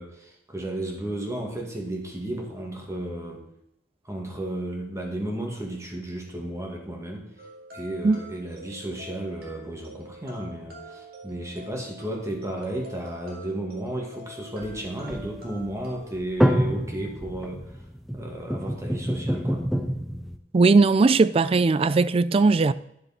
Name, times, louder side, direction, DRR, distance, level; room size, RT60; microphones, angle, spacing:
voice 1, 0.0-3.4 4.0-7.3 7.7-17.8 18.1-19.6, right 1 dB, 15° right, 2.1 m, -33 dB
sound 1, 7.4-16.1, equal, 55° right, 2.2 m, -45 dB
sound 2, 14.6-20.4, equal, ahead, 0.7 m, -27 dB
voice 2, 20.5-22.7, right 3 dB, 30° right, 0.3 m, -18 dB
11.0 x 6.7 x 4.3 m
head